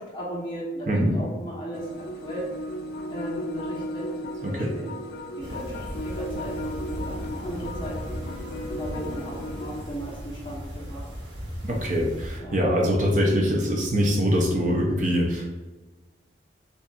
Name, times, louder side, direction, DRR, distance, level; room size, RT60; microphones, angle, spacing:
voice 1, 0.0-2.5 3.1-4.1 4.4-5.0 5.3-11.1 12.4-12.6, right 1 dB, 30° left, -6 dB, 1.1 m, -36 dB
voice 2, 0.9-1.2 4.4-4.7 11.6-15.5, equal, 45° right, -1 dB, 0.6 m, -23 dB
sound 1, 1.7-9.8, equal, 55° left, 0.3 m, -35 dB
sound 2, 5.4-12.4, equal, 80° right, 1.1 m, -37 dB
5.5 x 2.5 x 2.4 m, 1.2 s
head